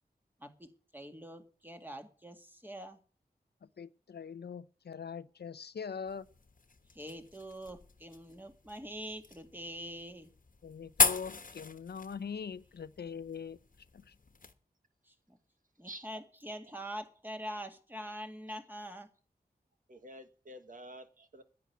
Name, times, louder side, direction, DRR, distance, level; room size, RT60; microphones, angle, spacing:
voice 1, 0.4-3.0 6.9-10.3 15.1-15.4 15.8-19.1, equal, 10° right, 2.1 m, -44 dB
voice 2, 3.6-6.3 10.6-13.6 13.9-14.1, left 6 dB, 85° left, 0.6 m, -42 dB
sound 1, 6.1-14.5, left 4 dB, 55° left, 1.3 m, -37 dB
voice 3, 19.9-21.4, right 1 dB, 55° right, 1.6 m, -49 dB
10.5 x 8.6 x 9.4 m
wide cardioid pair, 70°, 17 cm